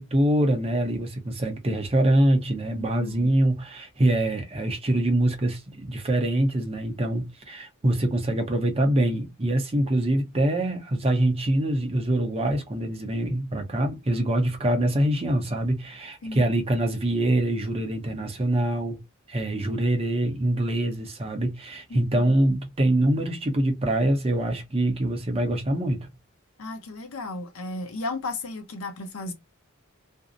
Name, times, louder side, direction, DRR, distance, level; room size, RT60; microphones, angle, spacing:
voice 1, 0.0-19.0 19.3-26.1, right 1 dB, 30° right, 0.6 m, -24 dB
voice 2, 2.7-3.3 16.2-16.5 21.9-22.3 26.6-29.3, left 2 dB, 75° left, 0.7 m, -34 dB
2.6 x 2.0 x 2.4 m
head